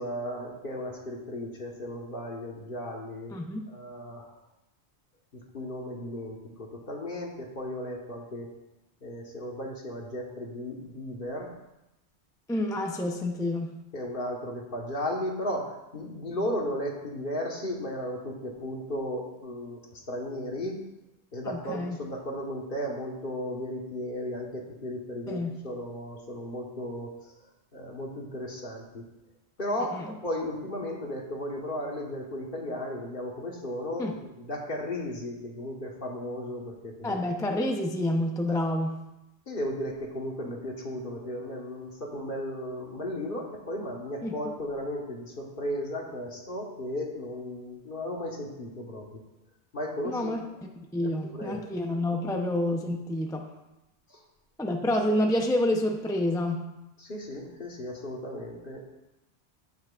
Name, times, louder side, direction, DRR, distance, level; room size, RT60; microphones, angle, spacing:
voice 1, 0.0-3.3 3.7-4.3 5.3-8.5 9.0-11.5 13.9-20.8 21.3-29.0 29.6-37.2 38.5-38.6 39.5-49.2 49.7-50.5 51.0-51.7 52.3-52.4 54.1-54.2 57.0-58.9, left 1 dB, 50° left, -1 dB, 1.6 m, -35 dB
voice 2, 3.3-3.7 12.5-13.8 21.4-22.0 25.3-25.6 29.9-30.0 34.0-34.1 37.0-39.0 44.2-44.3 50.0-50.4 50.8-53.5 54.6-56.6, left 1 dB, 5° left, 2 dB, 0.6 m, -28 dB
16.5 x 6.0 x 2.5 m, 0.95 s
omnidirectional pair, 1.1 m